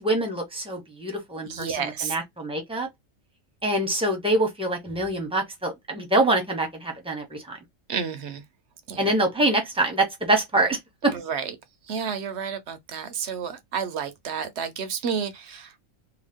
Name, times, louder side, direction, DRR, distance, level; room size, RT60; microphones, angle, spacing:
voice 1, 0.0-1.7 2.0-2.9 3.6-7.6 9.0-11.1, right 2 dB, 5° right, 0.7 m, -25 dB
voice 2, 1.4-2.2 7.9-8.4 8.9-9.1 11.0-11.6 11.8-15.7, right 7 dB, 60° right, 0.8 m, -31 dB
2.9 x 2.2 x 3.4 m
omnidirectional pair, 1.4 m